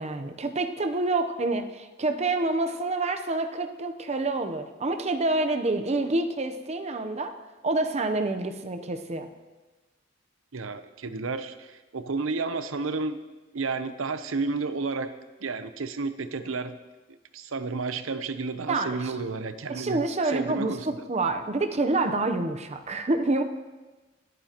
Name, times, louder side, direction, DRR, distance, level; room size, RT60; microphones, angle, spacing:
voice 1, 0.0-7.3 7.6-9.3 18.7-19.1 19.7-23.4, right 2 dB, 35° right, 7 dB, 0.8 m, -27 dB
voice 2, 10.5-13.2 13.5-15.1 15.4-16.8 17.1-20.9, right 4 dB, 85° right, 11 dB, 0.7 m, -31 dB
27.0 x 9.1 x 3.0 m, 1.2 s
head